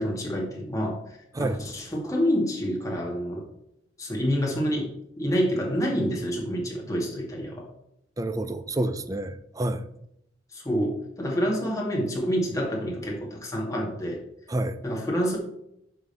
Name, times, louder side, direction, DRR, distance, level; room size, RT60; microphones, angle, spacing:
voice 1, 0.0-3.4 4.0-7.7 10.5-14.2 14.8-15.4, equal, 20° left, 1.9 m, -28 dB
voice 2, 8.2-9.9 14.5-14.8, right 1 dB, 20° right, 0.5 m, -28 dB
9.7 x 3.7 x 6.8 m
head